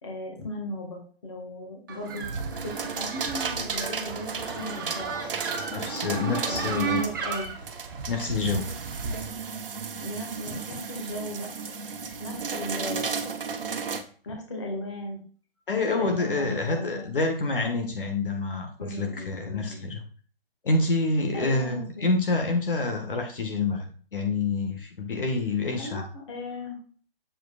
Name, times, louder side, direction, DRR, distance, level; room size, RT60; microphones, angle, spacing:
voice 1, 0.0-2.3 2.6-5.1 6.4-7.5 9.8-11.5 12.2-13.3 13.9-15.2 15.7-17.0 18.8-19.8 21.3-22.1 25.8-26.8, left 1 dB, 30° left, 0 dB, 1.9 m, -36 dB
sound 1, 1.9-9.3, right 5 dB, 20° right, 1.0 m, -34 dB
sound 2, 2.1-14.0, right 5 dB, 65° right, 1.1 m, -35 dB
voice 2, 5.7-7.0 8.1-8.6 15.7-20.0 20.6-26.1, left 3 dB, 60° left, 4 dB, 1.6 m, -27 dB
8.1 x 7.5 x 2.5 m, 0.42 s
hypercardioid pair, 180°, 30 cm